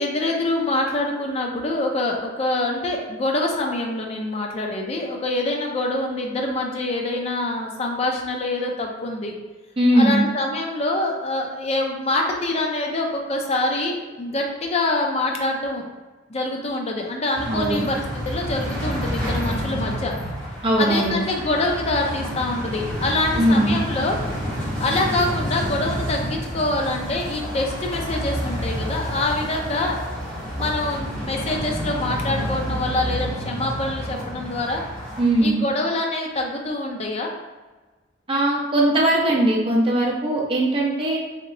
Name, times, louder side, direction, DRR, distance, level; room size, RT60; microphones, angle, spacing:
voice 1, 0.0-9.4 9.9-15.8 16.3-20.1 20.8-24.2 24.8-30.0 30.6-34.8 35.4-37.3, left 2 dB, 30° left, 1 dB, 0.4 m, -25 dB
voice 2, 9.8-10.2 17.5-17.8 20.6-21.2 23.4-23.8 35.2-35.6 38.3-41.2, right 1 dB, 25° right, -2 dB, 0.6 m, -19 dB
sound 1, 17.3-35.5, equal, 5° left, 1.4 m, -29 dB
3.0 x 2.8 x 2.5 m, 1.3 s
head